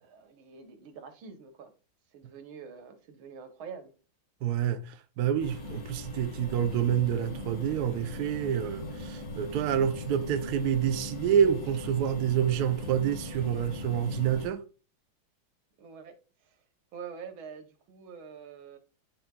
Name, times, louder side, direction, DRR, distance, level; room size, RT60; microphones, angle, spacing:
voice 1, 0.0-1.7 2.1-3.9 15.8-16.6 16.9-18.8, right 6 dB, 85° right, 1.8 m, -46 dB
voice 2, 4.4-14.6, right 9 dB, 70° right, 1.0 m, -28 dB
sound 1, 5.4-14.5, left 2 dB, 50° left, 1.6 m, -39 dB
10.5 x 4.0 x 2.3 m
omnidirectional pair, 2.2 m